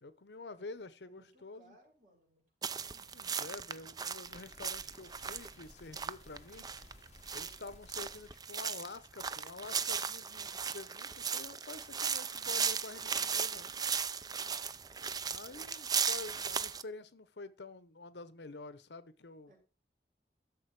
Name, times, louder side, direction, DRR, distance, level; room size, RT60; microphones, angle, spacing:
voice 1, 0.0-1.8 3.1-6.7 7.3-13.7 15.2-19.5, left 3 dB, 80° left, 0.9 m, -48 dB
voice 2, 1.0-3.1 7.3-7.6 14.3-14.7 19.5-19.6, right 2 dB, 50° right, 5.7 m, -65 dB
sound 1, 2.6-16.8, right 6 dB, 20° right, 0.5 m, -36 dB
sound 2, 4.2-8.4 8.9-9.0 9.4-9.5 9.9-10.0 10.4-10.5 10.9-11.0 11.4-11.5 11.9-12.0 12.4-12.5 12.9-13.0 13.4-13.5 13.9-14.0 14.4-14.5, left 2 dB, 40° left, 1.8 m, -58 dB
12.5 x 6.8 x 4.8 m
head